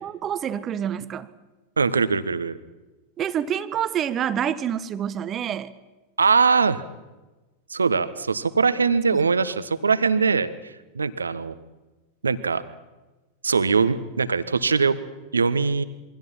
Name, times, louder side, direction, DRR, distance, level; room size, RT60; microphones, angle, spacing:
voice 1, 0.0-1.3 3.2-5.7 9.1-9.2, right 9 dB, 30° right, 13 dB, 1.4 m, -27 dB
voice 2, 1.8-2.6 6.2-6.8 7.7-11.5 12.2-12.6 13.4-15.0 15.3-15.8, right 5 dB, 75° right, 13 dB, 1.4 m, -22 dB
28.0 x 24.0 x 5.9 m, 1.1 s
figure-of-eight pair, 90°, 0 cm